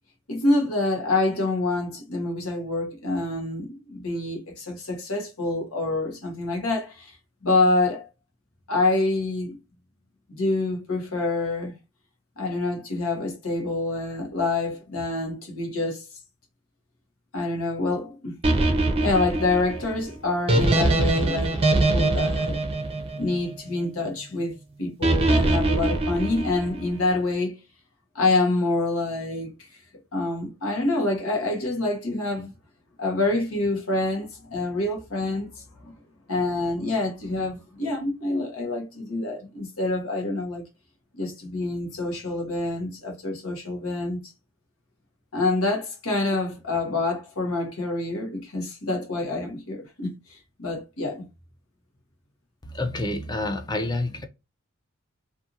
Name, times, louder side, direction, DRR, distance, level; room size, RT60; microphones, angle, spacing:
voice 1, 0.3-7.2 7.4-8.1 8.7-9.6 10.3-11.8 12.4-16.1 17.3-18.4 19.0-22.6 23.2-27.6 28.1-29.7 30.1-32.5 33.0-35.9 36.3-40.6 41.1-44.2 45.3-51.2, left 2 dB, 85° left, 1.0 m, -27 dB
sound 1, 18.4-23.7 25.0-26.9, right 2 dB, 30° right, 0.6 m, -23 dB
voice 2, 52.6-54.3, left 2 dB, 20° left, 0.4 m, -28 dB
2.6 x 2.5 x 2.7 m
head